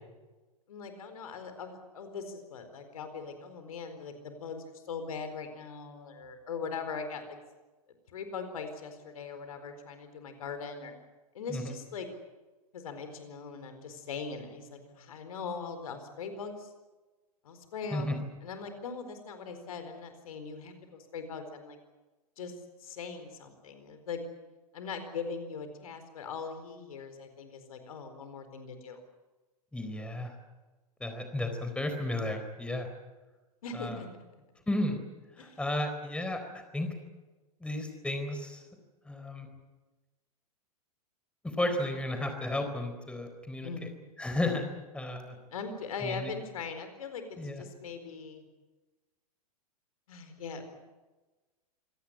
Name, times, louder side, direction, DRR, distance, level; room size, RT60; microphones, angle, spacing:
voice 1, 0.7-7.4 8.1-10.9 11.3-12.1 12.7-16.7 17.4-21.8 22.4-22.5 22.8-24.2 24.7-29.0 33.6-34.1 35.4-35.6 43.6-43.9 45.5-48.4 50.1-50.7, left 5 dB, 65° left, 8 dB, 4.4 m, -40 dB
voice 2, 29.7-30.3 31.0-32.9 33.7-34.0 34.7-35.0 35.3-36.9 37.6-38.7 39.1-39.5 41.4-43.9 44.2-44.6 44.9-45.3 46.0-46.3 47.4-47.6, left 1 dB, 5° left, 6 dB, 4.0 m, -33 dB
26.5 x 17.5 x 9.8 m, 1.2 s
figure-of-eight pair, 100°, 20 cm